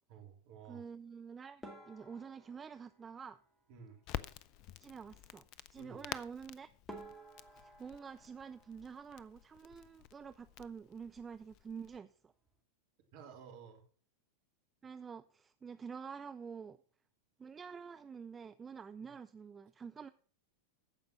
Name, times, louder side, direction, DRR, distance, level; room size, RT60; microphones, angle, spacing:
voice 1, 0.1-0.8 3.7-4.0 5.8-6.0 13.1-13.8 19.0-19.1, right 6 dB, 50° right, 3 dB, 2.5 m, -53 dB
voice 2, 0.7-3.4 4.8-5.4 5.7-6.7 7.5-12.3 14.8-16.8 17.4-20.1, right 6 dB, 20° right, 11 dB, 0.4 m, -48 dB
sound 1, 1.6-4.1 6.3-6.4 6.9-9.6 9.9-10.7 11.0-11.2 11.5-11.6 12.2-12.5, right 1 dB, 5° left, 2.2 m, -55 dB
Crackle, 4.0-12.0, left 12 dB, 40° left, 0.5 m, -49 dB
14.5 x 5.2 x 5.8 m, 0.42 s
figure-of-eight pair, 90°, 0 cm